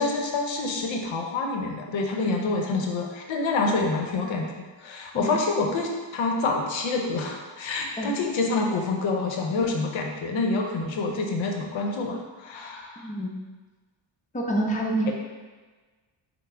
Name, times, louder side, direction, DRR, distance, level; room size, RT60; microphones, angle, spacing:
voice 1, 0.0-4.5 4.8-13.1, left 3 dB, 70° left, 1 dB, 0.7 m, -27 dB
voice 2, 13.0-13.3 14.3-15.1, right 1 dB, 15° left, -1 dB, 0.6 m, -27 dB
5.8 x 2.0 x 3.3 m, 1.3 s
cardioid pair, 65°, 48 cm